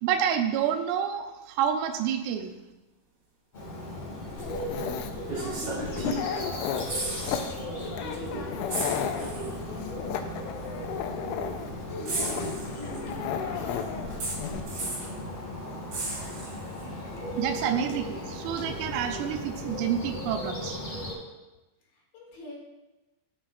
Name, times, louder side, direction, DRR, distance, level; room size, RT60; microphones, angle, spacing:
voice 1, 0.0-2.5 17.4-20.8, right 8 dB, 90° right, 6 dB, 3.3 m, -28 dB
Bird, 3.5-21.1, left 1 dB, 35° left, 2.2 m, -37 dB
Dog, 4.4-14.6, left 8 dB, 80° left, 2.8 m, -35 dB
sound 1, 4.4-4.5 5.3-6.4 6.6-7.5 7.8-7.9 8.7-9.5 10.6-10.7 12.1-13.1 14.2-15.1 15.9-16.8 18.6-18.7, right 2 dB, 45° right, 2.9 m, -35 dB
voice 2, 5.3-6.7 7.2-10.0 12.0-14.5 21.9-22.6, left 1 dB, 65° left, -3 dB, 4.1 m, -43 dB
12.5 x 7.2 x 2.4 m, 1.1 s
omnidirectional pair, 5.7 m